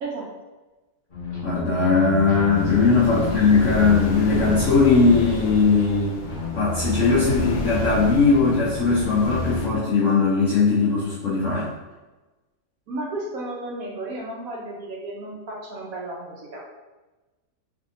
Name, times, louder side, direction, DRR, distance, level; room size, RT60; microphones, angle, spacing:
sound 1, 1.1-9.8, left 1 dB, 40° left, 0.9 m, -31 dB
voice 1, 1.4-6.2 6.5-11.7, left 4 dB, 65° left, -7 dB, 0.7 m, -19 dB
sound 2, 2.5-9.7, left 2 dB, 90° left, 1.2 m, -33 dB
voice 2, 3.0-3.4 3.7-3.8 12.9-16.7, right 2 dB, 65° right, -3 dB, 0.9 m, -33 dB
3.4 x 2.7 x 2.6 m, 1.2 s
omnidirectional pair, 1.8 m